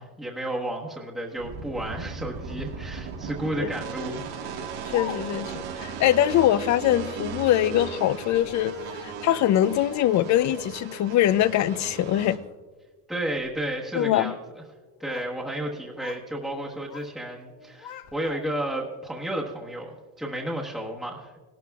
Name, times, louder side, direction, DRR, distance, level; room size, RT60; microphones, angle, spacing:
voice 1, 0.0-4.4 13.1-14.4 15.0-21.4, right 1 dB, ahead, 1.2 m, -32 dB
sound 1, 1.4-12.4, right 6 dB, 70° right, 1.7 m, -37 dB
Speech, 4.5-5.6 6.7-7.2 8.2-9.2 9.9-10.7 11.0-11.8 12.1-12.5 13.2-13.5 14.6-15.4 15.6-16.3 16.6-17.1 17.5-18.7, left 7 dB, 75° left, 1.1 m, -43 dB
voice 2, 4.9-8.7 9.0-12.4 13.9-14.3, left 12 dB, 45° left, 0.5 m, -23 dB
18.5 x 12.0 x 2.3 m
cardioid pair, 135°, 40 cm